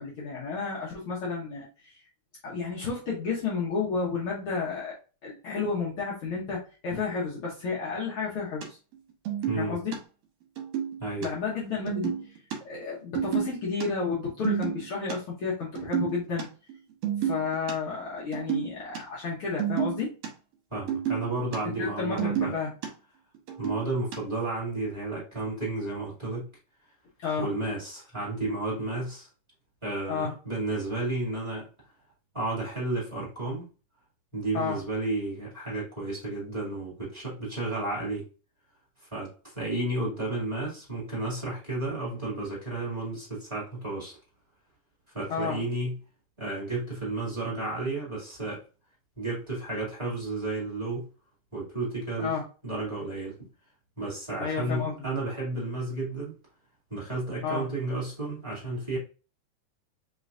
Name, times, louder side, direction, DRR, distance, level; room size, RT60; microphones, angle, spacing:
voice 1, 0.0-1.9 2.4-4.9 5.2-8.8 9.5-10.0 11.2-12.2 12.6-16.5 17.2-20.1 21.6-22.7 27.2-27.5 30.1-30.3 34.5-34.8 45.3-45.6 52.2-52.4 54.4-54.9 57.4-57.6, left 5 dB, 75° left, -5 dB, 1.2 m, -31 dB
sound 1, 8.6-8.7 8.9-9.0 9.3-10.0 10.6-11.3 11.5-11.6 11.9-12.6 13.2-13.8 14.1-15.1 15.6-16.4 16.7-16.8 17.0-17.7 18.2-19.0 19.3-20.3 20.7-21.6 21.8-22.9 23.3-24.2, right 9 dB, 65° right, 1.8 m, -30 dB
voice 2, 9.5-9.8 11.0-11.3 20.7-22.5 23.6-26.5 27.4-29.3 29.8-31.7 32.3-33.7 34.3-38.3 39.1-44.2 45.1-45.9 46.4-48.6 49.2-51.1 51.5-52.4 52.6-53.5 54.0-56.4 56.9-59.0, right 2 dB, 10° right, -7 dB, 1.5 m, -32 dB
4.7 x 3.1 x 2.5 m, 0.34 s
omnidirectional pair, 3.7 m